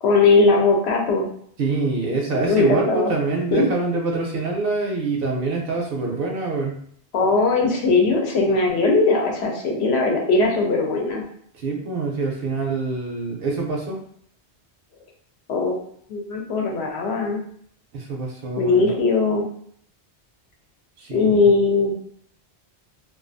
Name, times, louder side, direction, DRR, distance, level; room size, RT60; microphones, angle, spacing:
voice 1, 0.0-1.3 2.4-3.1 3.5-3.7 7.1-11.2 15.5-15.8 16.1-17.4 18.6-19.5 21.1-22.0, left 3 dB, 75° left, 1 dB, 0.8 m, -19 dB
voice 2, 1.6-6.8 11.5-13.9 17.9-18.9 21.0-21.4, right 3 dB, 65° right, -1 dB, 0.7 m, -25 dB
2.4 x 2.3 x 2.5 m, 0.64 s
omnidirectional pair, 1.1 m